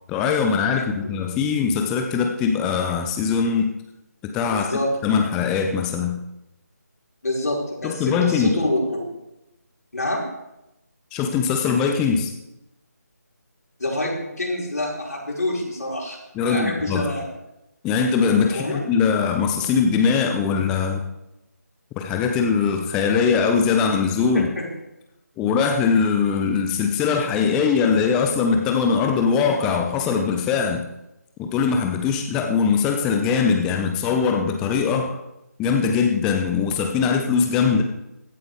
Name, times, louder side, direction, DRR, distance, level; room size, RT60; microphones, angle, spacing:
voice 1, 0.1-3.7 4.2-4.7 5.0-6.2 7.8-8.6 11.1-12.3 16.4-17.1 17.8-21.0 22.0-24.5 25.4-30.9 31.4-35.2 35.6-37.8, left 6 dB, 5° left, 4 dB, 0.4 m, -21 dB
voice 2, 4.5-4.9 7.2-9.0 9.9-10.2 13.8-17.2 18.5-18.9 24.3-24.7, left 1 dB, 70° left, -3 dB, 5.1 m, -27 dB
16.0 x 11.5 x 3.4 m, 0.91 s
figure-of-eight pair, 155°, 9 cm